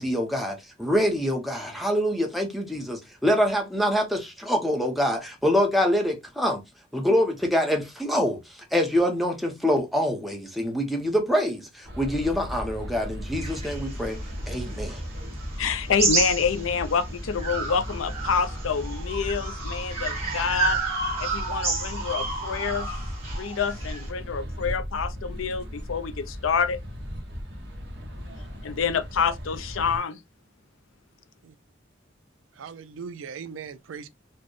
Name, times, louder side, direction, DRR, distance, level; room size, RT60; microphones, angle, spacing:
voice 1, 0.0-6.6 6.9-14.2 14.5-15.0, equal, ahead, 0.6 m, -25 dB
sound 1, 11.8-30.0, equal, 60° right, 1.0 m, -36 dB
sound 2, 13.4-17.0 17.4-24.1, right 4 dB, 30° right, 1.6 m, -31 dB
voice 2, 15.6-20.8 21.2-22.9 23.3-26.8 28.6-30.2, left 6 dB, 90° left, 0.5 m, -27 dB
voice 3, 32.6-34.1, right 6 dB, 85° right, 0.4 m, -39 dB
4.3 x 2.1 x 3.0 m
head